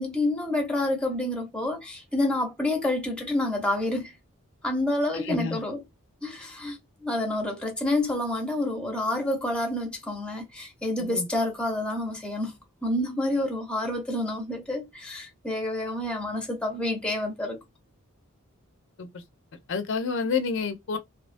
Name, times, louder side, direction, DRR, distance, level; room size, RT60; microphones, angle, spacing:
voice 1, 0.0-4.1 4.6-5.8 6.2-6.8 7.0-12.5 12.8-17.6, left 1 dB, 5° left, 0.6 m, -28 dB
voice 2, 5.1-5.6 11.0-11.3 19.0-19.2 19.7-21.0, left 5 dB, 60° left, 0.4 m, -29 dB
2.7 x 2.3 x 2.5 m
head